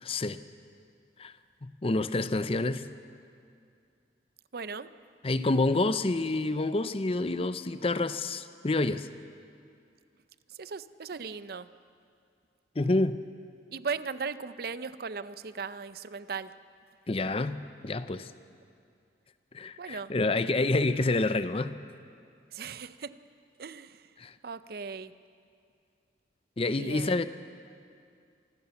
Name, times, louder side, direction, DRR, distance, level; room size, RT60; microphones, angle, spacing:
voice 1, 0.0-0.4 1.2-1.3 1.6-2.9 5.2-9.1 12.8-13.2 17.1-18.3 19.5-21.8 24.2-24.3 26.6-27.2, left 2 dB, 30° left, 12 dB, 0.6 m, -28 dB
voice 2, 4.5-4.9 10.6-11.7 13.7-16.5 19.8-20.1 22.5-23.2 23.6-24.1 24.4-25.1 26.8-27.2, right 5 dB, 55° right, 14 dB, 0.6 m, -37 dB
26.0 x 14.5 x 7.0 m, 2.4 s
head